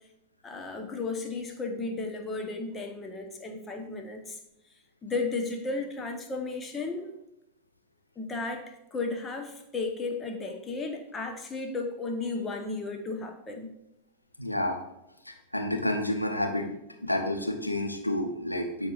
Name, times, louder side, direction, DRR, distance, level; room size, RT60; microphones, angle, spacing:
voice 1, 0.4-4.4 5.0-7.1 8.2-13.7, left 3 dB, 20° left, 4 dB, 1.1 m, -34 dB
voice 2, 14.4-14.8 15.3-16.7 17.0-18.9, left 1 dB, 85° left, 3 dB, 0.9 m, -29 dB
12.5 x 4.6 x 2.5 m, 0.85 s
figure-of-eight pair, 90°, 0 cm